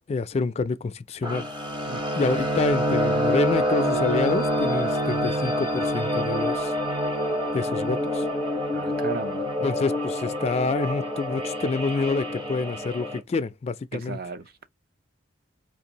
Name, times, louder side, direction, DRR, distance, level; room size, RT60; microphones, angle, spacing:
voice 1, 0.1-1.4 2.2-6.7 7.5-8.3 9.6-14.2, left 4 dB, 35° left, 0.3 m, -27 dB
sound 1, 1.2-13.2, equal, 25° right, 0.9 m, -26 dB
voice 2, 8.7-9.5 13.9-14.7, right 5 dB, 55° right, 0.6 m, -35 dB
4.3 x 2.6 x 2.8 m
head